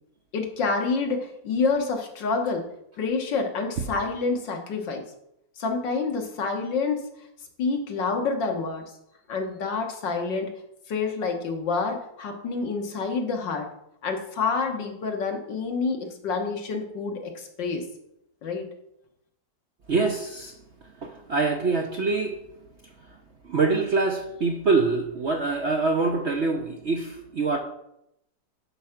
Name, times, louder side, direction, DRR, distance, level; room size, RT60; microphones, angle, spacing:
voice 1, 0.3-2.7 3.0-5.1 5.6-7.1 7.6-8.8 9.3-10.5 10.9-13.7 14.0-17.9 18.4-18.7, left 4 dB, 70° left, 3 dB, 2.0 m, -28 dB
voice 2, 19.9-20.5 21.0-22.4 23.4-27.6, right 3 dB, 55° right, 3 dB, 0.8 m, -25 dB
11.5 x 4.8 x 5.8 m, 0.80 s
omnidirectional pair, 2.0 m